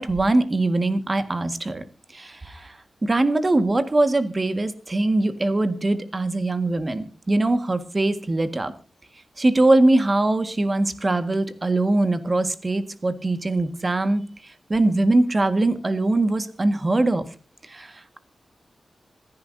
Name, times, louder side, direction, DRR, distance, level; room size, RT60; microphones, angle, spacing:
voice 1, 0.0-1.8 2.1-8.7 9.4-17.3 17.6-18.2, right 2 dB, 30° right, 10 dB, 1.6 m, -22 dB
26.5 x 10.5 x 2.7 m, 0.36 s
wide cardioid pair, 80°, 0 cm